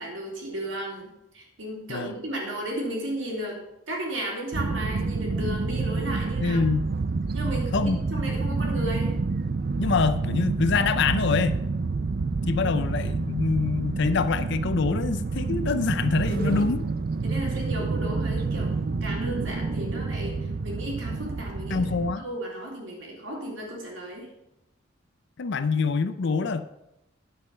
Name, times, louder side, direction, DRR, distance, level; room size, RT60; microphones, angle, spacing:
voice 1, 0.0-3.6 3.9-6.6 7.3-9.1 9.7-9.9 12.6-12.8 16.3-16.8 17.2-21.8 22.2-24.3, right 1 dB, 75° right, -2 dB, 3.5 m, -34 dB
sound 1, 4.5-22.1, right 3 dB, 50° right, 0.5 m, -28 dB
voice 2, 6.4-6.9 7.7-8.0 9.8-11.6 12.5-16.9 21.1-21.2 21.7-22.2 25.4-26.6, left 4 dB, 65° left, 12 dB, 0.5 m, -25 dB
9.7 x 7.7 x 5.5 m, 0.86 s
head